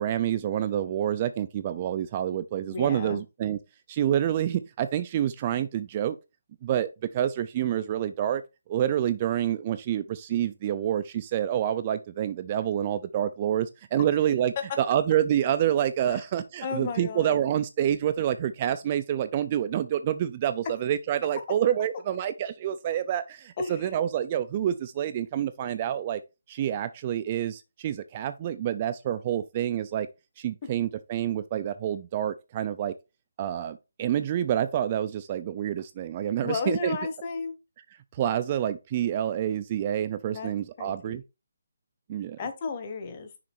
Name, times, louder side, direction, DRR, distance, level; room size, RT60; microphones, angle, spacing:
voice 1, 0.0-3.6 3.9-6.2 6.6-8.4 8.7-26.2 26.5-30.1 30.4-32.9 33.4-37.0 38.1-41.2 42.1-42.4, right 10 dB, 25° right, 0.4 m, -28 dB
voice 2, 2.7-3.2 16.1-16.2 16.6-17.4 23.6-23.9 36.4-37.6 40.3-40.5 40.8-41.2 42.4-43.3, left 4 dB, 30° left, 1.2 m, -33 dB
6.3 x 4.1 x 4.3 m
hypercardioid pair, 165°, 0 cm